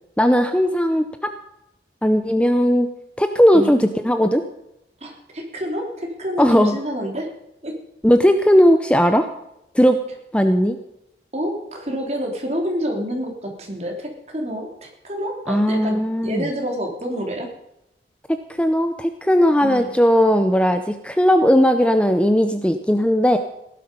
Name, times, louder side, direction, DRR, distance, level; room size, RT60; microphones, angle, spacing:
voice 1, 0.2-1.3 2.0-2.9 3.2-4.4 6.4-6.8 8.0-9.3 9.7-10.0 10.3-10.8 15.5-16.4 18.3-23.4, equal, 5° left, 8 dB, 0.6 m, -17 dB
voice 2, 5.0-7.3 7.6-7.7 11.3-17.5 19.6-19.9, equal, 40° right, 1 dB, 3.2 m, -28 dB
16.5 x 12.0 x 5.3 m, 0.83 s
head